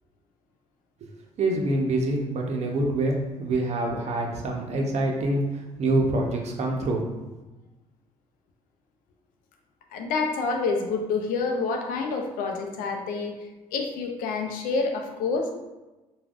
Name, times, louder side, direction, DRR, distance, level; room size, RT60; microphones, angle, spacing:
voice 1, 1.4-7.3, right 2 dB, 50° right, 0 dB, 0.7 m, -26 dB
voice 2, 9.9-13.3 13.7-15.5, left 4 dB, 80° left, 2 dB, 0.5 m, -28 dB
3.3 x 2.3 x 2.4 m, 1.1 s
supercardioid pair, 75°, 14 cm